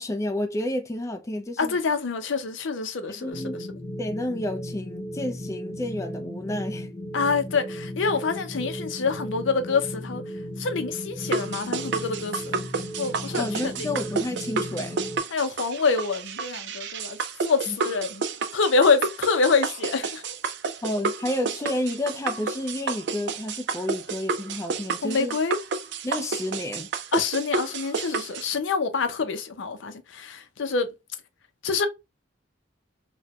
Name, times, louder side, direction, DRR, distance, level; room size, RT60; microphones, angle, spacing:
voice 1, 0.0-1.8 3.1-3.6 4.0-6.9 13.4-15.0 17.7-17.8 20.8-25.4 26.0-26.9, left 1 dB, 15° left, 0.4 m, -30 dB
voice 2, 1.6-3.4 7.1-10.2 10.6-12.4 13.0-13.7 15.3-17.2 17.4-18.2 18.5-20.4 25.0-25.6 27.1-30.9 31.6-31.9, left 4 dB, 75° left, 0.6 m, -26 dB
sound 1, 3.3-15.2, equal, 35° left, 1.0 m, -36 dB
sound 2, 11.2-28.4, right 4 dB, 65° right, 0.5 m, -30 dB
4.2 x 2.2 x 2.3 m
head